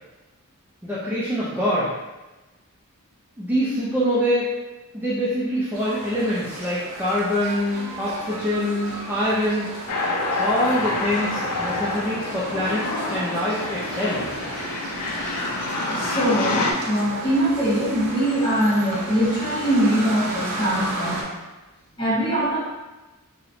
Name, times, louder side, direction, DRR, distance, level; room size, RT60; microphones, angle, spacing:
voice 1, 0.8-1.9 3.4-4.5 4.9-9.7 10.4-14.3, equal, 10° right, -9 dB, 0.3 m, -25 dB
sound 1, 5.7-21.2, right 1 dB, 70° right, 0.5 m, -34 dB
sound 2, 9.9-16.7, left 2 dB, 80° left, 0.4 m, -27 dB
voice 2, 15.9-21.2 22.0-22.6, right 1 dB, 25° left, -7 dB, 0.7 m, -22 dB
2.8 x 2.0 x 2.5 m, 1.1 s
head